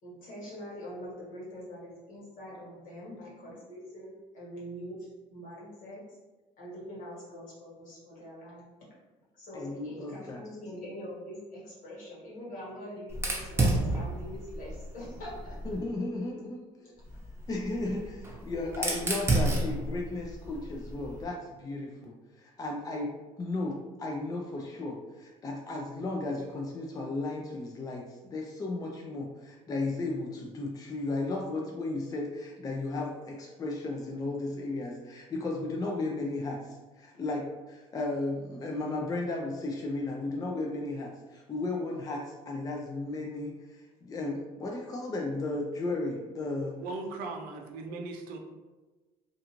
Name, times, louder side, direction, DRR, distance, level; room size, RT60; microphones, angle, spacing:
voice 1, 0.0-6.2 6.6-8.6 9.4-15.6 16.8-16.9, equal, 60° left, -6 dB, 1.3 m, -44 dB
voice 2, 9.5-10.4 15.6-16.6 17.5-46.8, left 2 dB, 25° left, 0 dB, 0.4 m, -35 dB
Fire, 13.1-15.9 17.0-21.2, right 2 dB, 15° right, 0.7 m, -31 dB
voice 3, 46.8-48.4, right 3 dB, 75° right, 3 dB, 0.5 m, -38 dB
2.4 x 2.4 x 2.9 m, 1.2 s
supercardioid pair, 75°, 15 cm